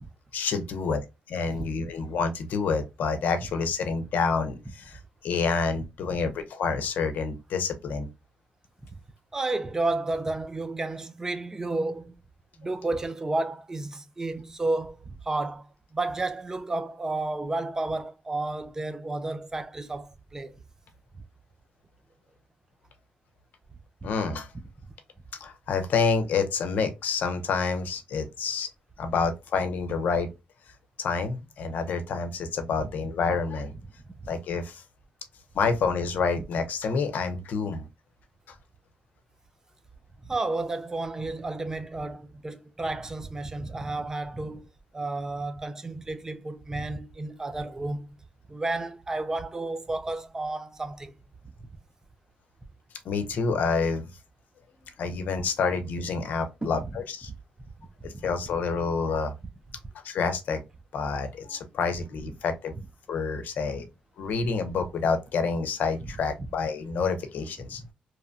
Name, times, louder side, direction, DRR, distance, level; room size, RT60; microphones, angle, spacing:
voice 1, 0.3-1.0 1.3-5.0 5.2-8.1 24.0-24.5 25.4-28.7 29.0-30.3 31.0-33.7 34.3-34.8 35.5-37.8 53.0-54.1 55.0-57.3 58.0-59.3 60.0-60.6 60.9-62.7 63.1-63.8 64.2-67.8, left 5 dB, 70° left, 0.6 m, -28 dB
voice 2, 9.3-12.1 12.6-20.5 40.3-44.7 44.9-48.2 48.5-51.1 56.6-56.9 58.1-58.2 67.8-67.9, right 2 dB, 20° right, 0.4 m, -32 dB
2.9 x 2.2 x 2.5 m
cardioid pair, 110°, 3 cm